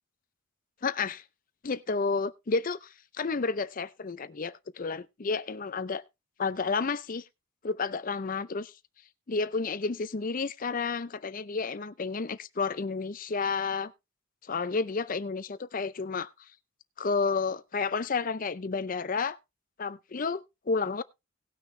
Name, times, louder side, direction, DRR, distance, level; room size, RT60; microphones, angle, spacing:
voice 1, 0.8-1.2 1.6-2.9 3.2-6.0 6.4-7.2 7.6-8.7 9.3-13.9 14.5-16.3 17.0-19.4 19.8-21.0, left 4 dB, 40° left, 0.5 m, -31 dB
18.5 x 6.3 x 3.2 m
head